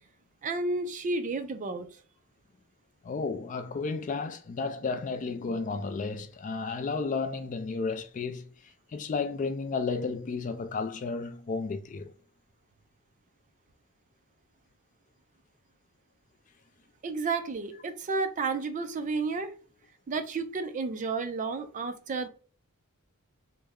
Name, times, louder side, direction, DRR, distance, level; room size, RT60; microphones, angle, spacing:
voice 1, 0.4-1.9 17.0-19.5 20.1-22.3, right 3 dB, 35° right, 0.4 m, -31 dB
voice 2, 3.0-8.5 8.9-12.1, left 4 dB, 35° left, 0.4 m, -32 dB
3.3 x 2.1 x 3.5 m
head